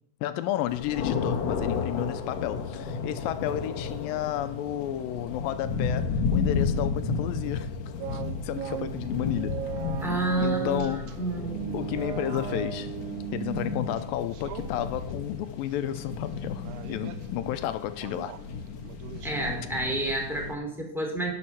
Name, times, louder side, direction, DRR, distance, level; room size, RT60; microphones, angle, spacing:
voice 1, 0.2-7.7 8.1-9.6 10.1-11.1 11.7-12.9 13.3-18.4, left 12 dB, 80° left, 2.3 m, -32 dB
sound 1, 0.7-20.5, left 5 dB, 65° left, 1.8 m, -33 dB
sound 2, 8.0-14.1 14.3-14.7 16.0-16.1 16.6-17.2 17.9-18.4 18.8-19.6, right 11 dB, 85° right, 1.8 m, -37 dB
voice 2, 10.0-11.8 19.2-21.3, right 1 dB, ahead, 2.2 m, -30 dB
11.0 x 7.8 x 5.8 m
omnidirectional pair, 4.3 m